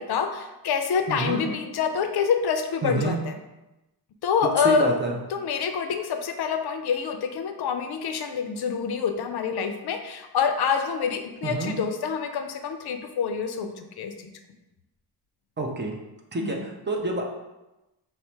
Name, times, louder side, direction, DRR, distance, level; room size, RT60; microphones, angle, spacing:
voice 1, 0.0-3.3 4.2-4.9 5.3-14.3 16.4-16.6, left 6 dB, 65° left, 7 dB, 0.5 m, -26 dB
voice 2, 1.1-1.5 2.8-3.2 4.6-5.1 11.4-11.8 15.6-15.9 16.3-17.2, right 2 dB, 25° right, 1 dB, 0.5 m, -28 dB
5.3 x 2.1 x 4.3 m, 1.0 s
wide cardioid pair, 155°, 41 cm